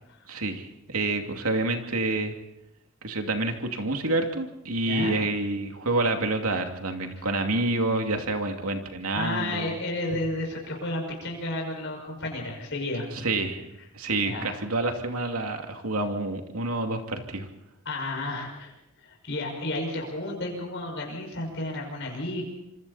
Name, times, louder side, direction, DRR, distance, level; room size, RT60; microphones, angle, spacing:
voice 1, 0.3-2.3 3.0-9.8 13.1-13.7 13.9-17.5, right 2 dB, 80° right, 4 dB, 2.6 m, -28 dB
voice 2, 9.1-13.1 14.2-14.6 17.8-18.7 19.0-22.4, left 2 dB, 55° left, 0 dB, 5.9 m, -32 dB
26.5 x 25.0 x 4.3 m, 0.88 s
head